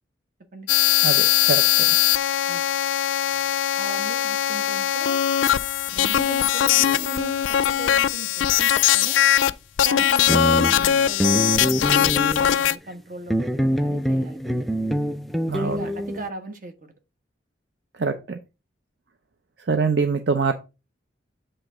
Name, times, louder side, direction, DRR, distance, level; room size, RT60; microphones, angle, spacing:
sound 1, 0.7-9.5 9.8-12.8, left 11 dB, 85° left, 0.4 m, -20 dB
voice 1, 1.0-1.9 15.5-15.8 18.0-18.4 19.7-20.6, right 4 dB, 65° right, 0.6 m, -24 dB
voice 2, 3.8-5.2 5.9-9.2 9.8-14.7 15.5-16.9, right 3 dB, 45° right, 1.2 m, -38 dB
sound 2, 6.8-7.1 10.0-10.1 10.3-12.6 13.3-16.3, equal, ahead, 0.3 m, -25 dB
7.9 x 3.3 x 4.9 m
head